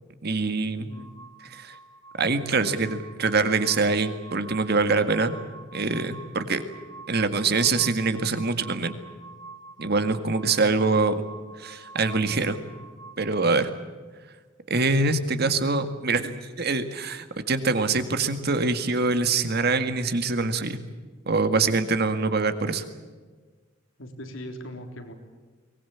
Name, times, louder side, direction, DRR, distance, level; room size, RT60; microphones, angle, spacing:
voice 1, 0.2-0.9 1.4-1.7 2.2-5.3 5.7-6.6 7.1-9.0 9.8-11.2 11.6-12.6 13.2-13.7 14.7-20.8 21.3-22.8, right 3 dB, 55° right, 9 dB, 1.9 m, -24 dB
voice 2, 0.8-1.1 10.4-10.8 24.0-25.1, equal, 85° left, 5 dB, 3.6 m, -40 dB
sound 1, 0.9-13.1, right 3 dB, 80° right, 3.7 m, -47 dB
23.5 x 19.5 x 8.7 m, 1.4 s
head